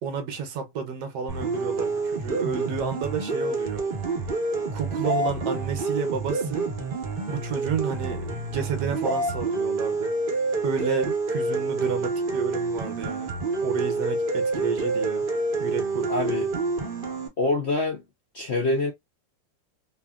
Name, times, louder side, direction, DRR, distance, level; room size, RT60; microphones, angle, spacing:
voice 1, 0.0-3.8 4.7-6.7 7.3-10.1 10.6-13.3 13.6-15.3 15.6-16.4, right 6 dB, 70° right, 1.2 m, -31 dB
sound 1, 1.3-17.3, right 3 dB, 45° right, 0.7 m, -28 dB
voice 2, 16.1-16.5 17.4-18.0 18.3-18.9, left 2 dB, 60° left, 0.7 m, -25 dB
2.8 x 2.6 x 2.2 m
omnidirectional pair, 1.9 m